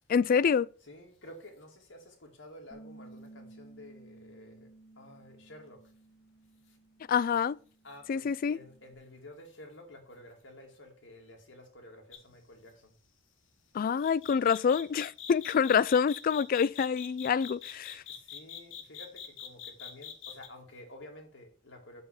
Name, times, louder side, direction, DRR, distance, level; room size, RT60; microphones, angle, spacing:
voice 1, 0.1-0.7 7.1-7.6 8.1-8.6 13.7-18.0, left 6 dB, 45° left, 0.3 m, -26 dB
voice 2, 0.8-4.7 5.0-5.8 6.6-6.8 7.8-12.9 18.1-22.0, left 1 dB, 70° left, 2.6 m, -51 dB
Bass guitar, 2.7-9.0, right 2 dB, 5° left, 2.0 m, -55 dB
sound 1, 12.1-12.3 14.0-20.5, left 9 dB, 85° left, 1.6 m, -43 dB
7.0 x 5.5 x 6.6 m
head